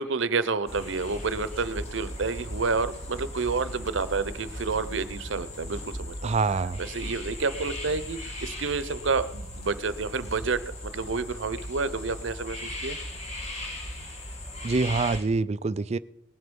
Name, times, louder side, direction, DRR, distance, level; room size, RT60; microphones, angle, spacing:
voice 1, 0.0-6.3 6.8-13.0, right 4 dB, 85° right, 0.7 m, -29 dB
sound 1, 0.7-15.2, left 1 dB, 35° left, 2.4 m, -38 dB
voice 2, 6.2-6.8 14.6-16.0, right 3 dB, 35° right, 0.4 m, -25 dB
19.0 x 7.9 x 5.3 m
head